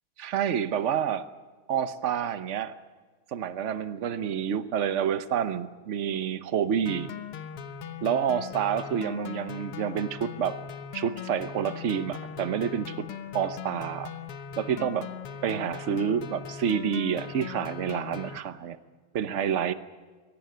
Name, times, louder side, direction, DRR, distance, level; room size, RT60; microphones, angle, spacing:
voice 1, 0.2-1.3 1.7-2.7 3.3-7.1 8.0-10.6 10.9-13.1 13.3-14.1 14.6-15.1 15.4-18.8 19.1-19.7, right 8 dB, 55° right, 13 dB, 0.8 m, -28 dB
sound 1, 6.9-18.4, left 8 dB, 85° left, 2.1 m, -40 dB
22.5 x 18.0 x 9.4 m, 1.4 s
omnidirectional pair, 2.4 m